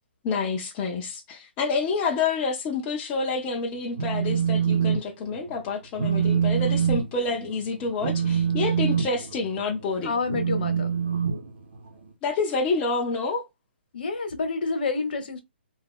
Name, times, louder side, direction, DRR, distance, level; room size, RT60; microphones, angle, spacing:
voice 1, 0.2-10.1 12.2-13.4, left 4 dB, 20° left, 0.5 m, -28 dB
Telephone, 3.8-5.0 5.3-5.6 5.9-12.1, right 7 dB, 75° right, 0.9 m, -25 dB
voice 2, 10.0-10.9 13.9-15.4, left 4 dB, 60° left, 1.0 m, -28 dB
2.7 x 2.5 x 3.5 m
hypercardioid pair, 165°, 6 cm